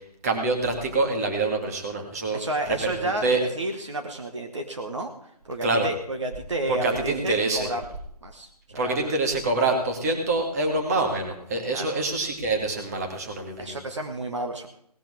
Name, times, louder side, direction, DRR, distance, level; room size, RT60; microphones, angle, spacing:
voice 1, 0.2-2.4 2.7-2.9 3.2-3.4 5.6-5.9 6.7-7.7 8.8-13.8, right 2 dB, 25° right, 3 dB, 2.1 m, -25 dB
voice 2, 2.3-5.1 5.5-7.8 8.2-9.1 11.7-12.0 13.6-14.7, right 1 dB, 50° right, 4 dB, 1.7 m, -31 dB
18.5 x 13.0 x 3.7 m, 0.68 s
figure-of-eight pair, 150°, 20 cm